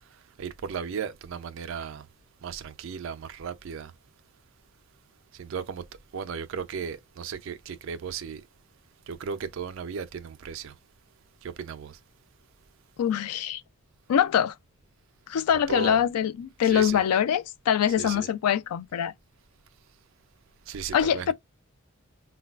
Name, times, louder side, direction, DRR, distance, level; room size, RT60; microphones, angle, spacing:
voice 1, 0.4-2.0 2.4-3.9 5.4-5.8 6.1-8.4 9.1-10.7 11.4-11.9 15.7-16.0 16.7-17.0 18.0-18.2 20.7-21.3, right 6 dB, 60° right, 0.3 m, -35 dB
voice 2, 13.0-13.6 14.1-14.5 15.3-19.1 20.9-21.3, left 9 dB, 90° left, 0.3 m, -24 dB
3.9 x 2.2 x 2.2 m
head